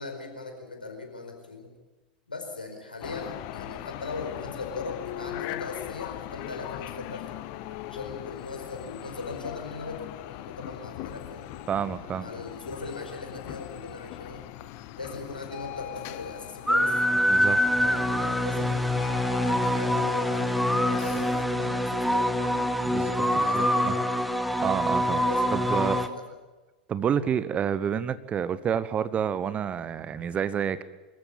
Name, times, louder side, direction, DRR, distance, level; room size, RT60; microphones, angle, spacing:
voice 1, 0.0-1.7 2.3-7.3 7.9-11.6 12.2-14.5 15.0-17.0 17.8-22.5 23.0-24.1 25.0-26.2, left 3 dB, 85° left, 3 dB, 4.7 m, -39 dB
sound 1, 3.0-21.5, left 13 dB, 50° left, 1.2 m, -40 dB
voice 2, 11.7-12.3 17.3-17.6 22.8-23.9 24.6-25.2 25.5-26.0 26.9-30.8, right 8 dB, 25° right, 16 dB, 1.0 m, -29 dB
sound 2, 16.7-26.1, equal, ahead, 1.3 m, -25 dB
24.5 x 14.5 x 9.0 m, 1.2 s
figure-of-eight pair, 85°, 5 cm